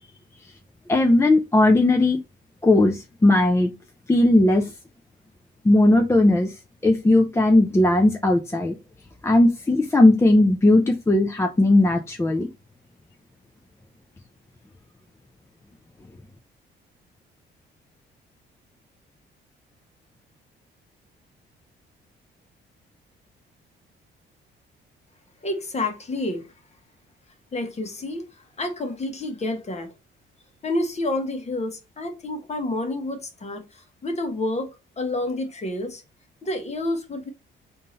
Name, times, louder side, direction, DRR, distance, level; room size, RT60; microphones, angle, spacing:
voice 1, 0.9-2.2 2.6-3.7 4.1-4.7 5.6-6.5 6.8-8.7 9.2-12.5, left 2 dB, 15° left, 0.5 m, -18 dB
voice 2, 25.4-26.5 27.5-29.9 30.6-34.7 35.0-36.0 36.4-37.3, left 2 dB, 35° left, 1.3 m, -29 dB
3.6 x 2.8 x 4.1 m
cardioid pair, 90°, 20 cm